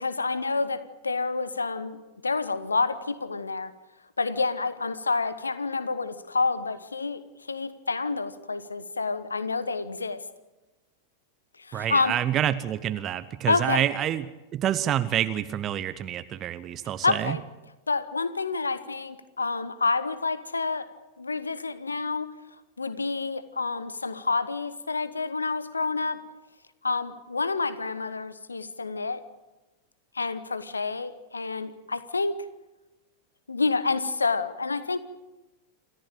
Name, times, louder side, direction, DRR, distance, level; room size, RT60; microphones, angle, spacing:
voice 1, 0.0-3.7 4.2-7.2 7.5-10.2 11.6-12.2 13.5-13.9 17.0-17.4 17.9-20.9 21.2-22.3 22.8-26.2 26.8-29.2 30.1-32.4 33.5-35.0, left 4 dB, 75° left, 15 dB, 1.1 m, -28 dB
voice 2, 11.7-14.2 14.5-17.4, right 11 dB, 30° right, 12 dB, 1.0 m, -27 dB
28.0 x 14.5 x 9.0 m, 1.1 s
figure-of-eight pair, 90°, 0 cm